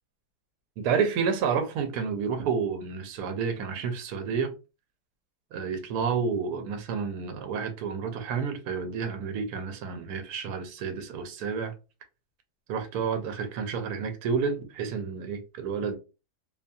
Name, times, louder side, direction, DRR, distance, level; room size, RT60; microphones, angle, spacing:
voice 1, 0.8-4.5 5.5-11.7 12.7-16.0, right 6 dB, 75° right, 1.1 m, -30 dB
2.8 x 2.6 x 2.2 m
omnidirectional pair, 1.7 m